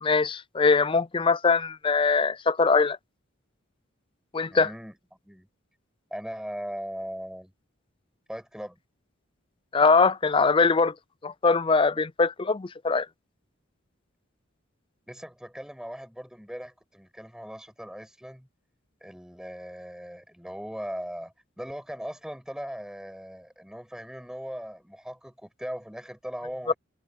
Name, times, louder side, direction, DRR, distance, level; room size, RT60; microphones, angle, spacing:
voice 1, 0.0-3.0 4.3-4.7 9.7-11.0 11.2-13.1 26.7-26.8, left 4 dB, 25° left, 0.5 m, -22 dB
voice 2, 4.5-4.9 5.2-5.5 6.1-7.5 8.3-8.8 15.1-18.5 19.0-26.7, equal, 5° right, 7.3 m, -39 dB
head